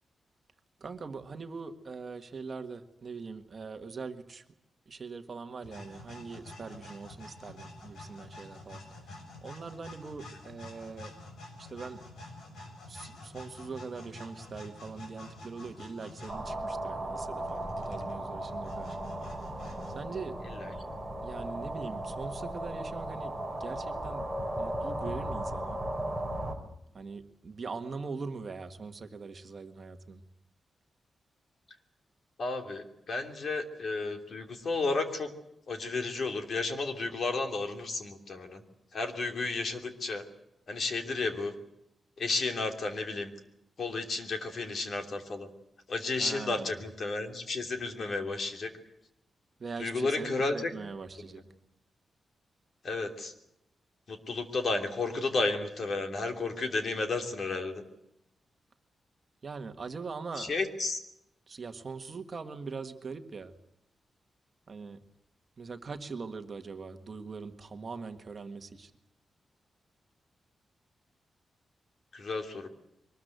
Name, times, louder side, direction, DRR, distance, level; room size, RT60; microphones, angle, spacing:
voice 1, 0.8-4.4 4.9-11.1 11.6-12.0 12.9-19.1 19.9-20.4 21.2-23.3 23.6-24.2 24.6-25.8 26.9-30.2 46.2-46.8 49.6-51.4 59.4-60.5 61.5-63.5 64.7-65.0 65.6-68.9, right 4 dB, 35° right, 7 dB, 1.7 m, -42 dB
sound 1, 5.6-16.4 17.4-20.0, left 2 dB, 75° left, 6.7 m, -48 dB
sound 2, 16.3-26.5, right 1 dB, 5° left, 3.4 m, -36 dB
voice 2, 32.4-35.3 35.7-38.6 38.9-40.2 40.7-41.5 42.2-43.3 43.8-45.5 45.9-48.7 49.8-50.5 51.2-51.3 52.8-53.3 54.1-57.8 60.4-61.0 72.1-72.7, left 3 dB, 45° left, 6 dB, 3.1 m, -32 dB
23.5 x 20.5 x 8.1 m, 0.83 s
wide cardioid pair, 175°, 0 cm